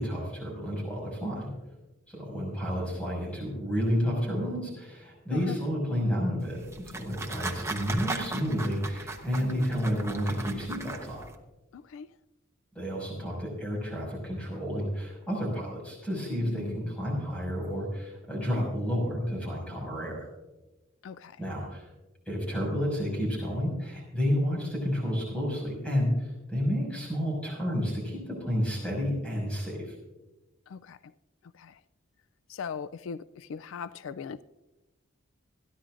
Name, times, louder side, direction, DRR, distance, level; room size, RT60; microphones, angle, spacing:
voice 1, 0.0-1.5 2.1-11.2 12.7-20.3 21.4-21.8 22.3-29.9, equal, 5° left, -2 dB, 5.8 m, -31 dB
sound 1, 6.4-11.4, right 2 dB, 15° right, 1.0 m, -38 dB
voice 2, 11.7-12.1 16.4-16.9 21.0-21.4 30.7-31.0 31.6-31.8 32.5-34.4, left 6 dB, 70° left, 15 dB, 0.3 m, -39 dB
26.5 x 10.5 x 2.5 m, 1.1 s
head